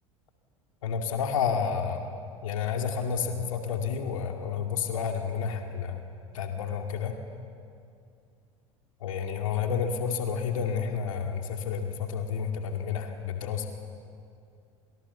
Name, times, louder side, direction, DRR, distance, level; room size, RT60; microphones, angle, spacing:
voice 1, 0.8-2.0 2.4-6.0 6.3-7.2 9.0-13.7, left 6 dB, 70° left, 4 dB, 2.4 m, -30 dB
29.5 x 28.0 x 7.0 m, 2.4 s
figure-of-eight pair, 75°, 18 cm